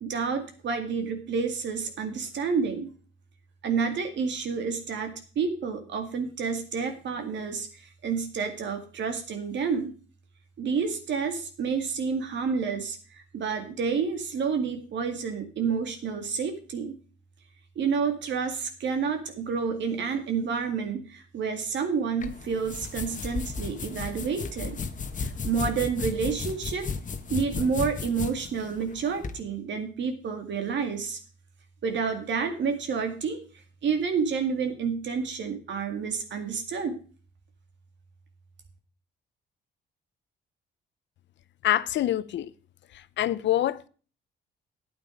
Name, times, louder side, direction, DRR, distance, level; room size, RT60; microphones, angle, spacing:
voice 1, 0.0-2.9 3.6-9.9 10.6-16.9 17.8-24.8 25.2-26.9 27.3-31.2 31.8-33.4 33.8-37.0, right 5 dB, 65° right, 2.1 m, -29 dB
sound 1, 22.2-29.4, left 5 dB, 40° left, 1.1 m, -34 dB
voice 2, 41.6-42.5 42.9-43.9, left 12 dB, 70° left, 0.7 m, -26 dB
9.1 x 9.0 x 5.1 m
cardioid pair, 90°, 20 cm